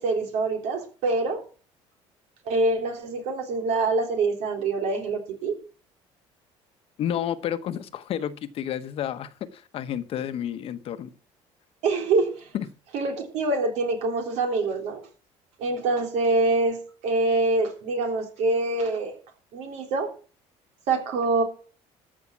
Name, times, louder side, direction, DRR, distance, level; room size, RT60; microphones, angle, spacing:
voice 1, 0.0-1.4 2.5-5.6 11.8-12.5 12.9-15.0 15.6-16.8 17.0-19.1 19.5-20.1 20.9-21.4, right 3 dB, 75° right, 3 dB, 3.5 m, -25 dB
voice 2, 7.0-11.1 12.5-12.7, left 10 dB, 55° left, 11 dB, 1.1 m, -30 dB
14.0 x 5.8 x 7.3 m, 0.39 s
cardioid pair, 130°, 12 cm